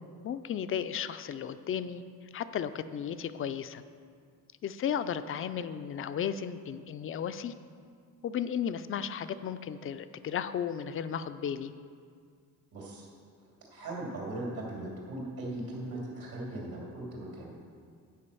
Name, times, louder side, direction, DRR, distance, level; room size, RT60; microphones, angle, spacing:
voice 1, 0.0-3.8 4.6-7.5 8.2-11.7, left 8 dB, 35° left, 12 dB, 0.4 m, -34 dB
voice 2, 12.7-13.1 13.7-17.5, right 1 dB, 70° right, -3 dB, 2.8 m, -39 dB
10.0 x 5.1 x 6.9 m, 2.2 s
cardioid pair, 125°, 36 cm